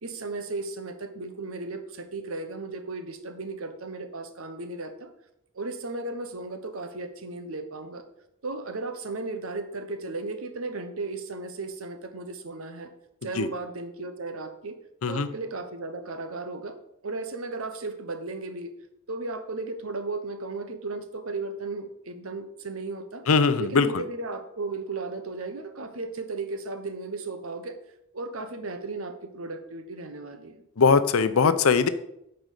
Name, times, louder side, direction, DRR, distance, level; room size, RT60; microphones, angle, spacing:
voice 1, 0.0-5.1 5.5-8.0 8.4-12.9 13.2-14.8 15.1-16.8 17.0-18.7 19.1-23.2 23.6-27.8 28.1-31.0, right 3 dB, 80° right, 9 dB, 1.0 m, -35 dB
voice 2, 23.3-23.9 30.8-31.9, left 5 dB, 90° left, 12 dB, 0.7 m, -20 dB
9.1 x 4.7 x 6.6 m, 0.81 s
head